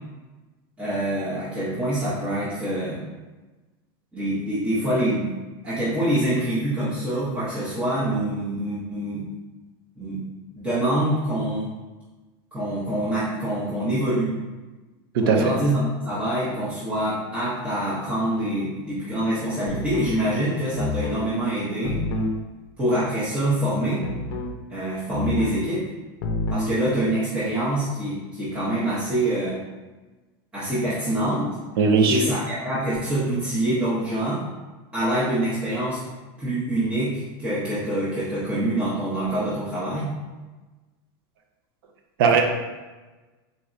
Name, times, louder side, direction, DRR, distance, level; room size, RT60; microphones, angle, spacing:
voice 1, 0.8-3.0 4.1-5.3 5.6-9.3 10.0-10.2 10.6-11.7 12.5-14.3 15.2-22.0 22.8-24.1 24.7-25.8 26.5-29.6 30.5-31.6 32.1-34.4 34.9-36.0 36.4-40.1, right 1 dB, 10° right, -11 dB, 0.6 m, -25 dB
voice 2, 15.1-15.5 31.8-32.2 42.2-42.4, right 5 dB, 75° right, 3 dB, 0.6 m, -18 dB
sound 1, 19.7-20.2 20.8-21.2 21.8-22.4 24.0-24.6 25.1-25.6 26.2-26.7, left 3 dB, 70° left, 0.5 m, -28 dB
3.9 x 3.3 x 2.4 m, 1.2 s
supercardioid pair, 170°, 12 cm